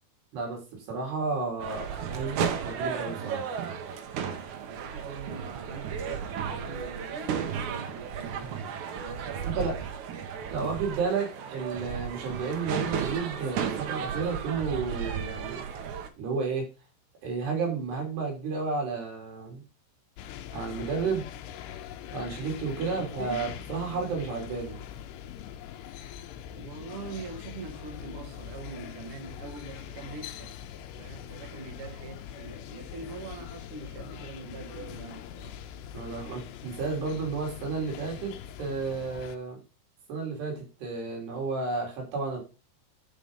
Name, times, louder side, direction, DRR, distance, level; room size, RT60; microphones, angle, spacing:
voice 1, 0.3-3.5 8.4-8.5 9.4-9.7 10.5-15.6 16.2-16.7 17.2-19.6 20.5-21.2 22.1-24.8 35.9-38.3 38.6-39.6 40.1-42.4, right 4 dB, 65° right, 5.1 m, -32 dB
sound 1, 1.6-16.1, right 7 dB, 90° right, 1.6 m, -34 dB
voice 2, 4.6-8.6 9.0-9.9 22.7-23.5 23.8-24.1 26.5-30.5 31.0-35.6, right 4 dB, 50° right, 1.7 m, -43 dB
sound 2, 20.2-39.4, left 10 dB, 80° left, 2.8 m, -42 dB
11.0 x 5.1 x 5.3 m
omnidirectional pair, 5.2 m